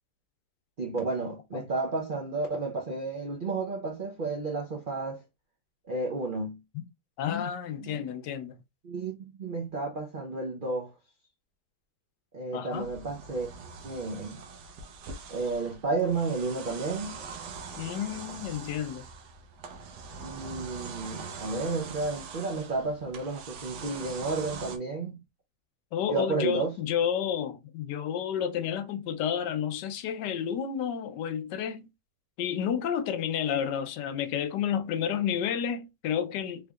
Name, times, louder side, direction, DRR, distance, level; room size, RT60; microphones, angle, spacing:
voice 1, 0.8-5.2 5.9-6.6 7.8-8.0 8.8-10.9 12.3-13.5 13.8-14.4 15.3-17.2 20.2-25.2 26.1-26.7, right 3 dB, 60° right, 0.5 m, -32 dB
voice 2, 7.2-8.6 12.5-12.9 17.8-19.1 25.9-31.9 32.4-36.7, left 8 dB, 80° left, 1.2 m, -31 dB
sound 1, 12.7-24.8, right 5 dB, 75° right, 1.2 m, -43 dB
3.5 x 3.4 x 2.3 m
omnidirectional pair, 1.9 m